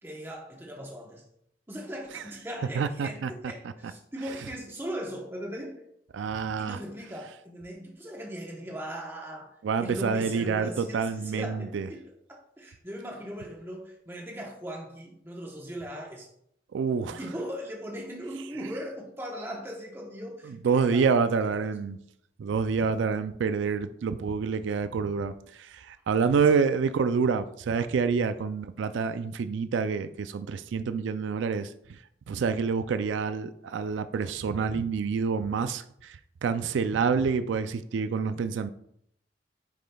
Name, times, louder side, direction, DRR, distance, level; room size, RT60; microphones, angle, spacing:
voice 1, 0.0-1.2 1.7-5.8 6.6-12.0 12.6-16.3 17.1-21.1 21.5-21.6 22.8-22.9 28.3-28.4, equal, 15° right, 0.9 m, -39 dB
voice 2, 2.8-3.3 6.1-6.8 9.6-11.9 16.7-17.2 20.6-22.0 22.4-25.3 25.6-31.7 32.3-36.2 36.4-38.7, right 5 dB, 90° right, 0.3 m, -27 dB
9.3 x 5.1 x 2.3 m
head